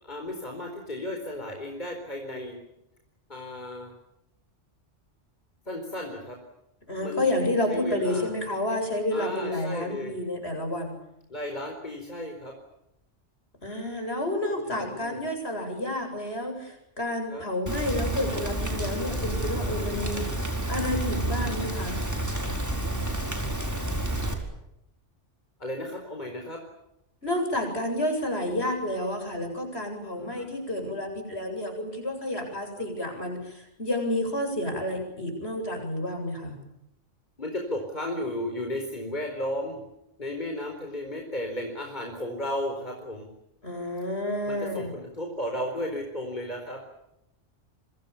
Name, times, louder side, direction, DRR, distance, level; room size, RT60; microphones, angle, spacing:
voice 1, 0.0-2.6 3.3-3.9 5.7-6.4 7.0-7.2 7.7-8.3 9.1-10.2 11.3-12.5 14.4-15.2 17.3-17.4 25.6-26.6 30.1-30.5 32.7-32.8 37.4-39.8 40.2-43.3 44.4-46.8, left 1 dB, 35° left, 2 dB, 4.6 m, -34 dB
voice 2, 6.9-11.0 13.6-20.4 20.7-22.0 27.2-36.6 43.6-44.9, left 1 dB, 55° left, 4 dB, 8.1 m, -30 dB
Rain, 17.7-24.3, right 1 dB, 15° right, 4.7 m, -30 dB
28.5 x 25.5 x 7.2 m, 0.83 s
omnidirectional pair, 1.3 m